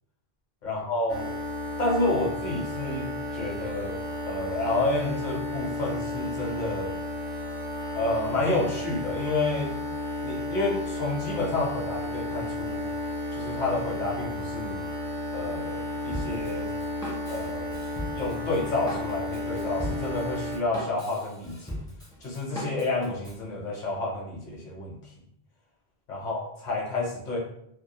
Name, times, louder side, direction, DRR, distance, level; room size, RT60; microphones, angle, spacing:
voice 1, 0.6-1.3 1.8-6.9 7.9-9.7 10.2-12.8 13.3-14.8 15.3-16.7 17.3-17.8 18.1-21.7 22.2-25.1 26.1-27.4, left 2 dB, 50° left, -3 dB, 0.8 m, -30 dB
sound 1, 1.1-20.6, left 1 dB, 65° right, 0.8 m, -33 dB
Drum kit, 16.1-23.4, equal, 5° left, 0.4 m, -38 dB
2.2 x 2.0 x 2.8 m, 0.75 s
omnidirectional pair, 1.0 m